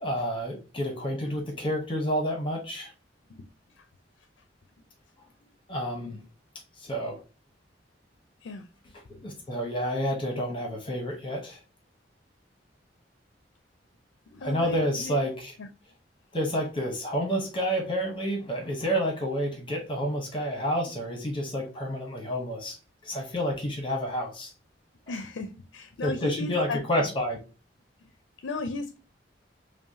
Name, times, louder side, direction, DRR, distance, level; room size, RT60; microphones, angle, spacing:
voice 1, 0.0-2.9 5.7-6.2 6.8-7.2 9.2-11.6 14.4-15.5 16.3-22.8 23.0-24.5 26.0-27.4, equal, 30° left, 0.9 m, -29 dB
voice 2, 14.3-15.2 15.6-15.7 25.1-27.1 28.0-28.1 28.4-29.0, left 3 dB, 90° left, 0.5 m, -36 dB
5.4 x 2.2 x 2.7 m
head